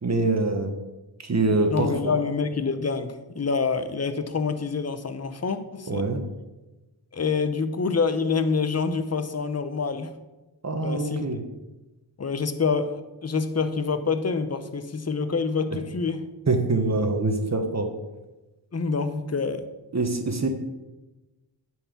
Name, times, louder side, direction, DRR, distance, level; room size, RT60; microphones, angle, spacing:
voice 1, 0.0-0.7 1.2-2.1 5.9-6.2 10.6-11.4 16.5-17.9 19.9-20.5, right 3 dB, 40° right, 5 dB, 1.2 m, -24 dB
voice 2, 1.7-6.1 7.1-10.1 10.7-11.3 12.2-16.3 18.7-19.7, left 5 dB, 35° left, 10 dB, 0.8 m, -27 dB
9.3 x 4.7 x 6.9 m, 1.1 s
wide cardioid pair, 85°, 43 cm